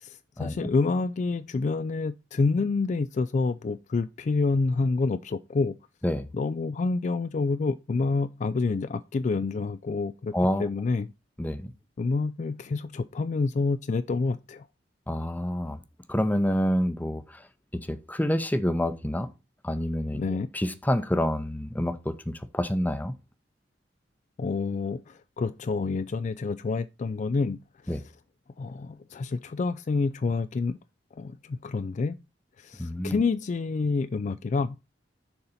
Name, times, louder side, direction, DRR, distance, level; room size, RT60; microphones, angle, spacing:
voice 1, 0.0-5.7 6.3-10.3 10.6-11.1 12.0-14.7 20.1-20.5 24.4-27.6 27.8-28.0 28.6-30.8 31.2-32.2 32.6-34.8, left 4 dB, 40° left, 0.3 m, -28 dB
voice 2, 10.3-10.6 11.4-11.7 15.1-15.8 16.1-17.2 17.9-19.3 19.6-20.2 20.5-23.1 27.9-28.0 32.8-33.2, equal, 10° left, 0.7 m, -27 dB
6.8 x 4.1 x 5.6 m
head